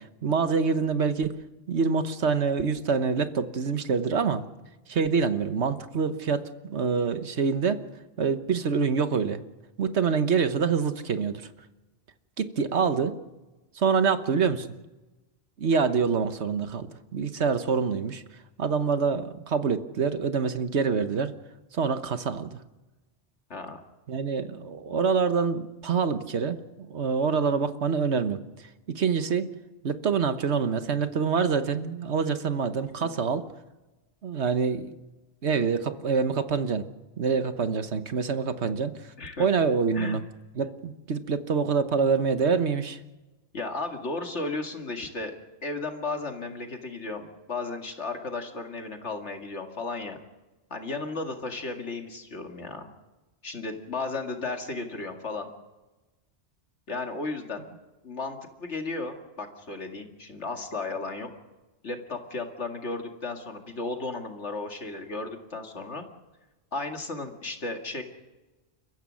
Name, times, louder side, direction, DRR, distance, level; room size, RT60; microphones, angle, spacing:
voice 1, 0.0-1.3 1.7-4.4 4.9-7.8 8.2-9.4 9.8-11.4 12.4-13.2 13.7-14.7 15.6-18.2 18.6-21.3 21.7-22.6 24.1-26.6 26.9-29.5 29.8-33.4 34.2-34.9 35.4-36.9 37.2-38.9 39.4-40.2 40.6-43.0, right 5 dB, 75° right, 10 dB, 1.5 m, -26 dB
voice 2, 39.2-39.5 39.9-40.2 43.5-45.4 45.6-50.2 50.7-52.9 53.4-55.5 56.9-57.7 58.0-61.3 61.8-66.0 66.7-68.0, left 3 dB, 80° left, 4 dB, 2.5 m, -34 dB
30.0 x 14.5 x 6.4 m, 1.1 s
omnidirectional pair, 1.2 m